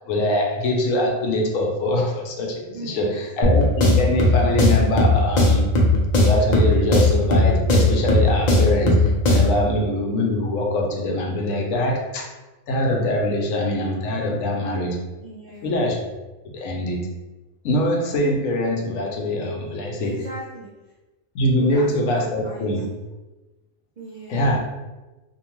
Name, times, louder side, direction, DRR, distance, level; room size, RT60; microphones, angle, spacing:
voice 1, 0.1-5.6 6.2-12.3 12.7-15.1 15.6-16.1 16.5-17.2 17.6-20.2 21.3-22.9 24.3-24.6, left 1 dB, 75° left, 1 dB, 1.0 m, -23 dB
voice 2, 2.7-3.2 15.2-15.7 20.0-20.7 21.5-21.9 22.2-22.7 24.0-24.4, right 2 dB, 65° right, -7 dB, 0.4 m, -38 dB
sound 1, 3.4-9.6, left 1 dB, 55° left, 0.5 m, -18 dB
2.7 x 2.2 x 2.9 m, 1.1 s
omnidirectional pair, 1.4 m